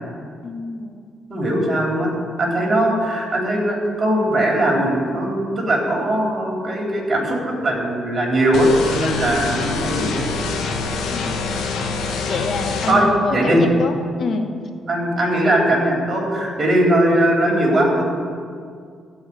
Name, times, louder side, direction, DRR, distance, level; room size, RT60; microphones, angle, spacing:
voice 1, 0.4-1.0 11.1-11.4 12.3-14.5, left 4 dB, 50° left, 6 dB, 1.3 m, -26 dB
voice 2, 1.3-2.1 2.4-10.3 12.9-13.6 14.9-18.0, right 1 dB, 35° right, -1 dB, 3.6 m, -19 dB
sound 1, 8.5-12.9, left 4 dB, 75° left, 1.3 m, -25 dB
14.5 x 4.9 x 8.8 m, 2.2 s
cardioid pair, 90°, 0 cm